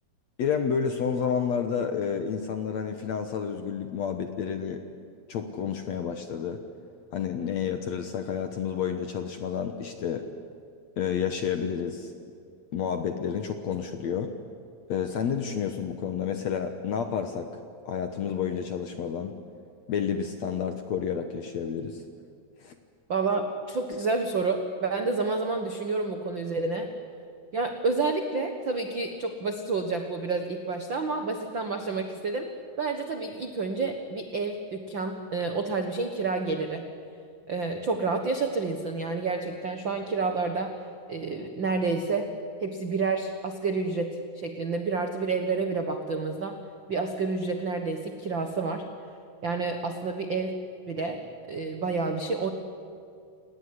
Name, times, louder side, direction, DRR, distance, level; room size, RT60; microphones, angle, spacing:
voice 1, 0.4-4.8 5.3-6.6 7.1-10.2 11.0-12.1 12.7-14.3 14.9-17.5 17.9-19.3 19.9-22.0 22.6-22.8, left 7 dB, 65° left, 7 dB, 1.8 m, -30 dB
voice 2, 23.1-26.9 27.5-32.5 32.8-36.9 37.5-40.7 41.1-42.3 42.6-46.5 46.9-48.8 49.4-50.5 50.9-51.2 51.5-52.5, right 4 dB, 65° right, 6 dB, 1.2 m, -29 dB
29.5 x 18.5 x 9.8 m, 2.3 s
omnidirectional pair, 4.4 m